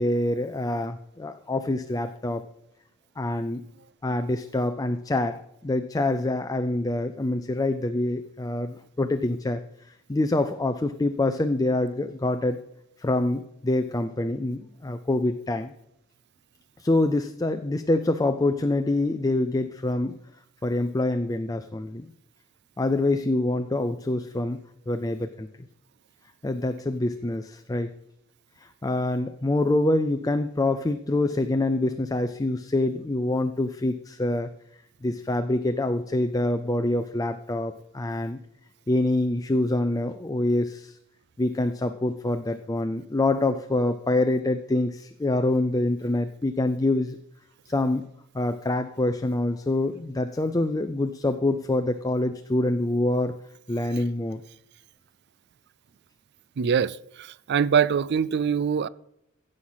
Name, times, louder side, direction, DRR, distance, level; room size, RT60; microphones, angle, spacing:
voice 1, 0.0-2.4 3.2-3.6 4.0-9.6 10.1-12.6 13.0-15.7 16.8-20.2 20.6-22.1 22.8-24.6 24.9-25.5 26.4-27.9 28.6-34.5 35.0-38.4 38.9-41.0 41.4-47.2 47.7-48.1 48.3-53.3 53.7-54.4, left 2 dB, 15° left, 0.5 m, -25 dB
voice 2, 56.6-58.9, right 7 dB, 55° right, 0.4 m, -24 dB
15.5 x 6.5 x 5.7 m
head